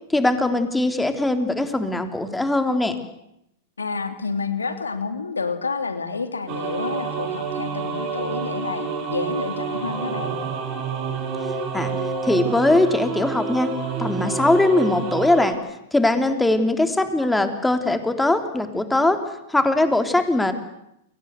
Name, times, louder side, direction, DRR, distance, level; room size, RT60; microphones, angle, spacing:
voice 1, 0.1-2.9 11.7-11.9 12.2-13.7 14.0-15.6 15.9-19.2 19.5-20.5, left 2 dB, 5° left, 7 dB, 3.4 m, -20 dB
voice 2, 3.8-10.4, left 4 dB, 90° left, 8 dB, 3.0 m, -29 dB
sound 1, 6.5-15.5, right 5 dB, 45° right, 6.4 m, -28 dB
29.5 x 23.5 x 8.1 m, 0.81 s
hypercardioid pair, 100°, 0 cm